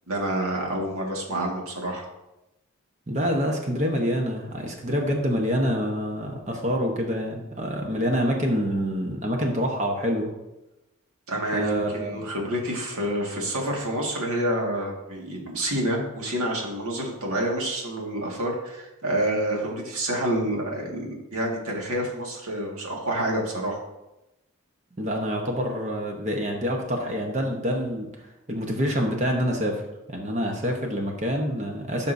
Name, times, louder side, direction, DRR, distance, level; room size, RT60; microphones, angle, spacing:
voice 1, 0.1-2.1 11.3-23.8, right 1 dB, 85° right, -1 dB, 1.9 m, -28 dB
voice 2, 3.1-10.3 11.5-12.2 25.0-29.8 30.1-32.1, equal, 30° right, 1 dB, 1.0 m, -26 dB
13.0 x 5.5 x 2.7 m, 0.95 s
head